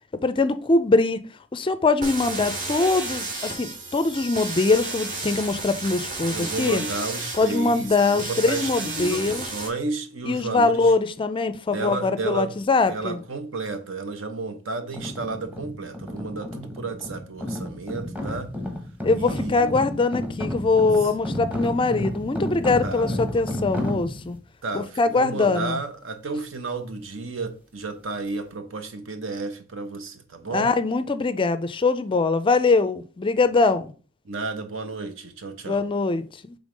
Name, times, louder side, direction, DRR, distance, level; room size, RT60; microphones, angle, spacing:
voice 1, 0.2-1.2 1.5-6.8 7.4-9.5 10.3-13.2 19.0-24.4 24.7-25.8 30.5-33.9 35.7-36.6, left 3 dB, 25° left, 0.4 m, -22 dB
sound 1, 2.0-9.7, right 2 dB, 45° right, 2.0 m, -32 dB
voice 2, 6.3-10.8 11.7-12.5 12.9-18.5 19.1-19.7 22.8-23.6 24.6-30.7 34.2-35.8, right 3 dB, 70° right, 0.9 m, -32 dB
sound 2, 14.9-24.4, left 1 dB, 10° right, 1.0 m, -32 dB
5.3 x 3.5 x 5.1 m
head